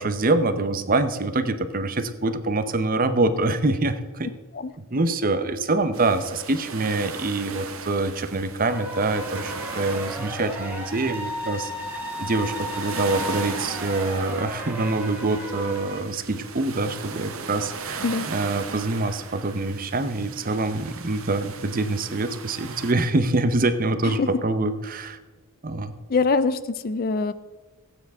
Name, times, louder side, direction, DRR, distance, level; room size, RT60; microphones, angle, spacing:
voice 1, 0.0-4.3 4.9-11.7 12.2-25.2 25.6-25.9, right 2 dB, 40° right, 10 dB, 0.7 m, -25 dB
sound 1, 5.9-22.9, right 5 dB, 70° right, 1.1 m, -38 dB
sound 2, 8.6-16.0, left 1 dB, 10° right, 1.6 m, -35 dB
voice 2, 26.1-27.3, left 4 dB, 40° left, 14 dB, 0.4 m, -23 dB
17.0 x 8.9 x 3.5 m, 1.3 s
head